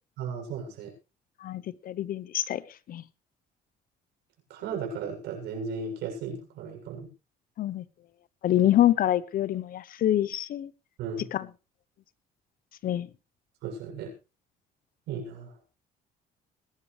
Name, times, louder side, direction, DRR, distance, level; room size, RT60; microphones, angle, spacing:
voice 1, 0.2-0.9 4.5-7.1 11.0-11.3 13.6-14.1 15.1-15.5, right 5 dB, 85° right, 7.3 m, -35 dB
voice 2, 1.4-2.6 2.9-3.0 7.6-7.8 8.4-10.7 11.3-11.5 12.8-13.1, left 12 dB, 55° left, 0.9 m, -26 dB
21.5 x 11.5 x 3.3 m
cardioid pair, 110°, 17 cm